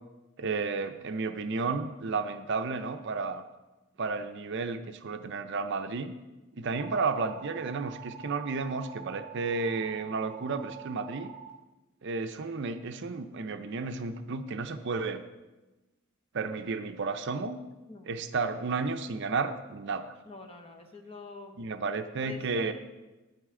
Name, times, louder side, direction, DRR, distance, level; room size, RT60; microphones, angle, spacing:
voice 1, 0.4-3.4 4.0-6.1 6.5-11.3 12.0-15.2 16.3-17.6 18.1-20.1 21.6-22.7, right 4 dB, 55° right, 8 dB, 0.5 m, -32 dB
sound 1, 6.7-11.5, right 8 dB, 5° right, 2.5 m, -46 dB
voice 2, 17.9-18.2 20.2-21.6 22.2-22.7, left 2 dB, 25° left, 4 dB, 0.9 m, -45 dB
9.8 x 9.1 x 3.7 m, 1.1 s
head